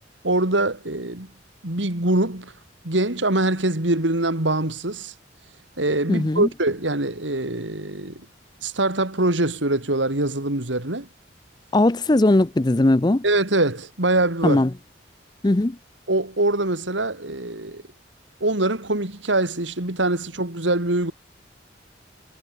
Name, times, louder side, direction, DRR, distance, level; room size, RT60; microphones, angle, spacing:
voice 1, 0.2-1.3 1.6-2.5 2.8-5.1 5.8-8.2 8.6-11.1 13.2-14.6 16.1-17.8 18.4-21.1, right 2 dB, 80° right, 3.3 m, -23 dB
voice 2, 6.1-6.5 11.7-13.2 14.4-14.7 15.4-15.8, left 2 dB, 20° left, 0.5 m, -19 dB
head